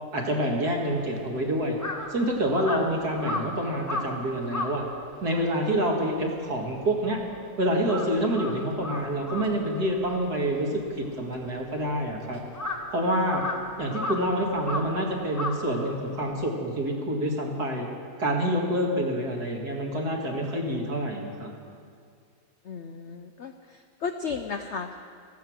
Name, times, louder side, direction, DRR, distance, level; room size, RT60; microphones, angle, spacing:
voice 1, 0.1-1.8 2.1-4.8 5.2-7.2 7.6-10.7 11.2-12.4 12.9-13.4 13.8-17.9 18.2-21.5, right 1 dB, 65° right, 0 dB, 2.5 m, -27 dB
Crow, 0.9-7.4 7.7-16.3, left 2 dB, 10° left, 1.0 m, -36 dB
voice 2, 22.7-23.5 24.0-25.0, left 5 dB, 70° left, 7 dB, 0.7 m, -33 dB
14.5 x 13.5 x 6.3 m, 2.3 s
omnidirectional pair, 1.9 m